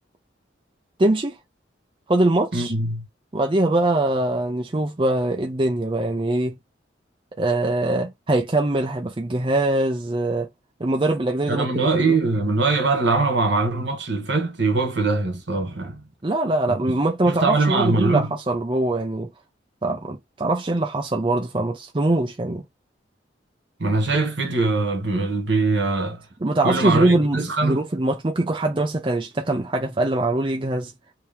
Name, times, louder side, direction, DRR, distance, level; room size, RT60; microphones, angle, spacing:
voice 1, 1.0-1.4 2.1-2.7 3.3-6.5 7.4-10.5 10.8-12.2 16.2-19.3 19.8-22.6 26.4-30.9, right 2 dB, 25° right, 0.6 m, -22 dB
voice 2, 2.5-3.1 11.5-16.0 16.9-17.0 17.3-18.3 23.8-26.2 26.6-27.8, right 3 dB, 65° right, 1.2 m, -22 dB
3.0 x 2.9 x 3.3 m
head